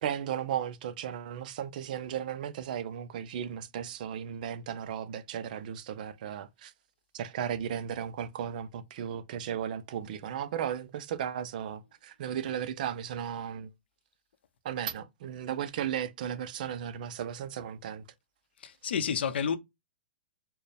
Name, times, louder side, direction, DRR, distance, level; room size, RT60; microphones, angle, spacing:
voice 1, 0.0-6.7 7.1-13.7 14.6-18.0, right 9 dB, 50° right, 0.5 m, -35 dB
voice 2, 18.6-19.6, left 7 dB, 70° left, 0.6 m, -30 dB
4.5 x 2.1 x 3.3 m
hypercardioid pair, 160°, 6 cm